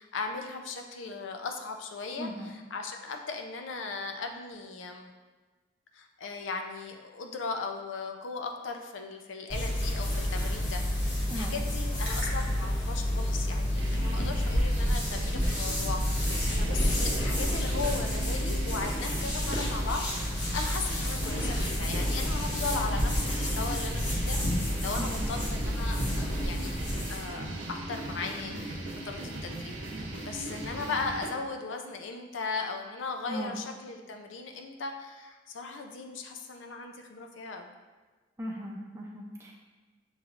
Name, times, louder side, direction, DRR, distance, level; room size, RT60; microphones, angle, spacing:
voice 1, 0.0-5.1 5.9-24.4 24.8-26.8 27.1-37.7, left 4 dB, 80° left, 4 dB, 0.5 m, -37 dB
voice 2, 2.2-2.5 11.3-11.5 25.0-25.4 33.3-33.6 38.4-39.5, equal, 15° right, -2 dB, 0.5 m, -38 dB
sound 1, 9.5-27.3, equal, 60° left, 1.2 m, -29 dB
sound 2, 13.8-31.3, right 2 dB, 80° right, 0.7 m, -39 dB
6.3 x 3.1 x 2.5 m, 1.3 s
head